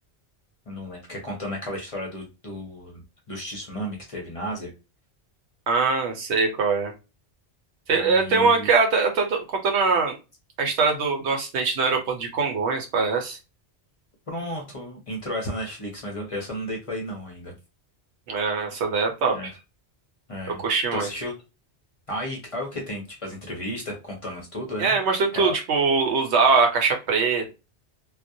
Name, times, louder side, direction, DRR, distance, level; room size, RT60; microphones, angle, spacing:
voice 1, 0.7-4.7 7.9-8.7 14.3-17.5 19.3-19.5 20.3-20.6 20.9-21.3 22.1-25.0 25.3-25.5, equal, 40° left, 0 dB, 0.6 m, -33 dB
voice 2, 5.7-6.9 7.9-10.2 10.6-13.4 18.3-19.5 20.5-21.1 24.8-27.5, right 4 dB, 80° right, 4 dB, 0.9 m, -22 dB
2.2 x 2.1 x 2.6 m, 0.28 s
omnidirectional pair, 1.1 m